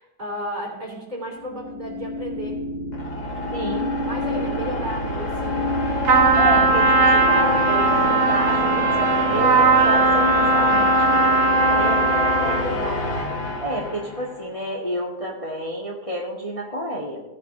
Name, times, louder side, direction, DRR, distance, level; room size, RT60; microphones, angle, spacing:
voice 1, 0.0-2.6 4.0-5.7 11.7-12.1, equal, 25° right, -3 dB, 3.0 m, -34 dB
sound 1, 1.3-14.5, left 1 dB, 75° left, 2.6 m, -26 dB
voice 2, 3.5-4.0 4.3-4.4 6.4-11.2 11.7-12.2 12.4-13.1 13.6-17.2, right 1 dB, 20° left, -5 dB, 1.7 m, -30 dB
Trumpet, 6.0-12.7, right 3 dB, 75° right, 1.8 m, -18 dB
17.5 x 9.1 x 2.7 m, 0.94 s
omnidirectional pair, 1.7 m